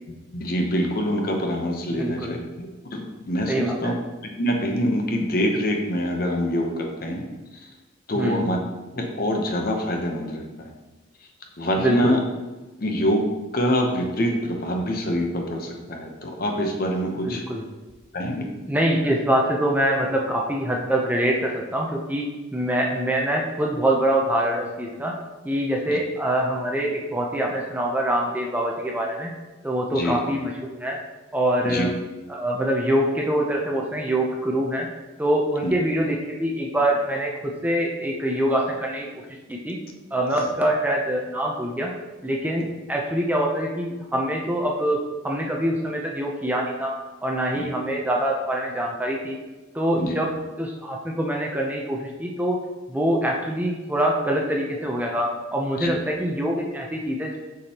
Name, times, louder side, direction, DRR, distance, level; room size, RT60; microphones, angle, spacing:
voice 1, 0.1-4.0 4.4-7.3 7.6-7.7 8.1-8.6 8.9-10.7 11.6-12.2 12.8-13.3 13.5-17.4 18.1-18.5 25.9-26.0 29.9-30.2 31.6-31.9 35.6-35.7 47.5-47.6 49.9-50.2 55.8-55.9, equal, 45° left, 2 dB, 0.8 m, -25 dB
voice 2, 2.0-2.4 3.5-3.9 8.2-8.4 11.8-12.2 17.2-17.6 18.7-25.1 25.4-29.3 29.6-31.0 31.3-31.9 32.3-34.9 35.2-39.1 39.5-39.8 40.1-41.9 42.2-45.0 45.2-46.9 47.2-49.4 49.7-50.3 50.6-52.6 52.9-57.4, right 1 dB, 10° right, -1 dB, 0.6 m, -24 dB
6.9 x 5.2 x 2.9 m, 1.2 s
head